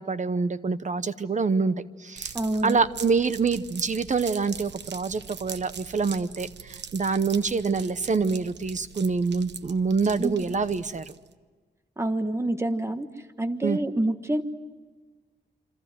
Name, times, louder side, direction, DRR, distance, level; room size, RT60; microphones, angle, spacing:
voice 1, 0.0-1.7 2.0-2.3 2.6-11.0 13.6-13.8, right 4 dB, 45° right, 13 dB, 0.9 m, -26 dB
sound 1, 2.2-11.3, right 7 dB, 75° right, 1.0 m, -42 dB
voice 2, 2.3-2.8 10.2-10.5 12.0-13.1 13.4-14.4, right 1 dB, 15° right, 8 dB, 1.4 m, -27 dB
27.5 x 26.0 x 7.8 m, 1.4 s
wide cardioid pair, 130°, 18 cm